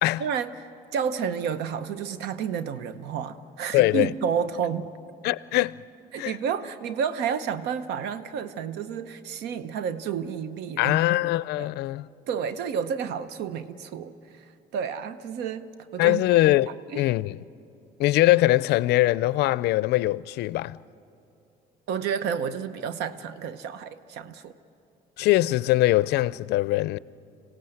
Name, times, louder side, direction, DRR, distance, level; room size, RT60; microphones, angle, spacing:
voice 1, 0.2-4.9 6.1-11.0 11.6-11.7 12.3-14.5 14.7-16.2 16.9-17.0 21.9-24.5, right 7 dB, 85° right, 0.9 m, -30 dB
voice 2, 3.7-4.1 5.2-5.8 6.2-6.3 10.8-12.1 16.0-17.4 18.0-20.8 25.2-27.0, left 17 dB, 75° left, 0.4 m, -22 dB
26.0 x 17.0 x 7.8 m
cardioid pair, 110°, 17 cm